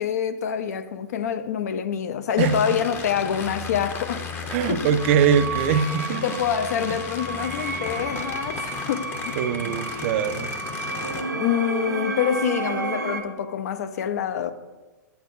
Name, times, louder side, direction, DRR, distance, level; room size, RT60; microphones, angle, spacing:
voice 1, 0.0-4.3 4.7-4.9 6.2-9.4 9.7-9.8 11.3-14.5, left 8 dB, 60° left, 0.5 m, -26 dB
sound 1, 2.4-11.2, left 5 dB, 20° left, 0.7 m, -35 dB
voice 2, 2.4-2.8 4.5-6.4 6.9-7.0 9.4-10.5, right 7 dB, 45° right, 0.4 m, -22 dB
sound 2, 5.0-13.2, right 3 dB, 85° right, 0.9 m, -31 dB
8.1 x 8.0 x 2.6 m
figure-of-eight pair, 110°, 10 cm